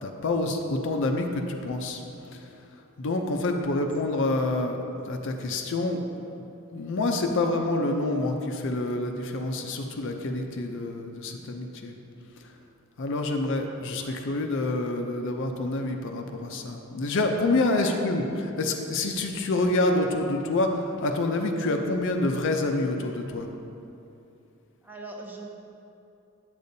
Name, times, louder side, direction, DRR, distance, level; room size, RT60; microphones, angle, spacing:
voice 1, 0.0-2.0 2.3-6.0 6.3-6.4 6.7-11.9 12.4-12.5 13.0-23.5, left 2 dB, 55° left, 4 dB, 0.5 m, -27 dB
voice 2, 24.8-25.6, right 2 dB, 10° right, -1 dB, 0.6 m, -39 dB
8.7 x 6.7 x 2.7 m, 2.8 s
head